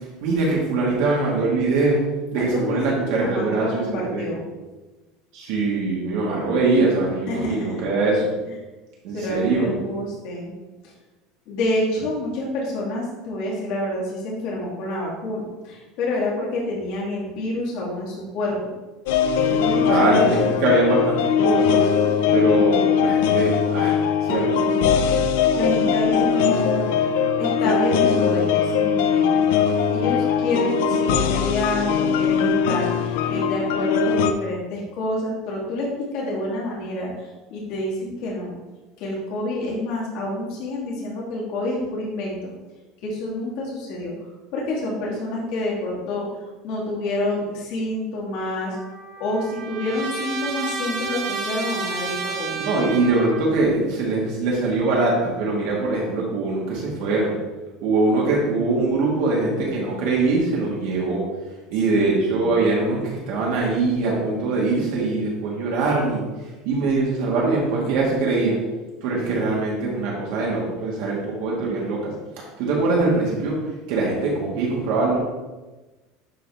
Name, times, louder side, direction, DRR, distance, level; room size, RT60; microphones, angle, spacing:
voice 1, 0.2-2.0 2.3-4.3 5.3-8.3 9.0-9.7 19.7-21.8 22.3-24.6 52.6-57.4 57.8-61.2 61.7-66.2 66.7-68.6 69.0-72.1 72.6-73.6 73.9-75.2, right 3 dB, 60° right, -4 dB, 1.7 m, -22 dB
voice 2, 2.4-2.8 3.2-4.4 7.3-7.8 9.1-10.5 10.8-10.9 11.5-18.6 19.5-20.3 25.5-27.0 27.4-38.5 39.0-42.5 43.0-44.1 44.5-46.3 46.6-48.8 49.2-52.8 61.9-62.7, left 1 dB, 50° left, -4 dB, 2.3 m, -28 dB
sound 1, 19.1-34.3, left 6 dB, 75° left, 0.5 m, -20 dB
Trumpet, 48.7-53.6, right 4 dB, 40° right, 1.2 m, -30 dB
11.0 x 3.8 x 3.5 m, 1.2 s
cardioid pair, 175°, 0 cm